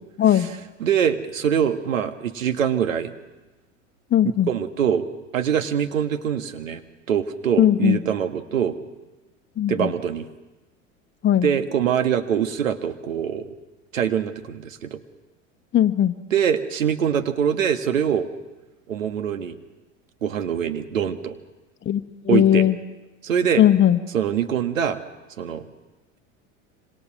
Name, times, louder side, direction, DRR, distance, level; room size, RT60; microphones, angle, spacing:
voice 1, 0.2-0.5 4.1-4.5 7.6-8.0 9.6-9.9 11.2-11.5 15.7-16.2 21.8-22.7 23.6-24.0, left 11 dB, 30° left, 9 dB, 1.4 m, -18 dB
voice 2, 0.8-3.1 4.5-5.1 5.3-6.8 7.1-8.8 9.7-10.3 11.4-13.5 13.9-15.0 16.3-18.3 18.9-19.5 20.2-21.4 22.3-22.7 23.2-23.6 24.1-25.0 25.4-25.7, right 8 dB, 85° right, 8 dB, 1.7 m, -23 dB
26.5 x 26.0 x 6.1 m, 1.1 s
hypercardioid pair, 85°, 39 cm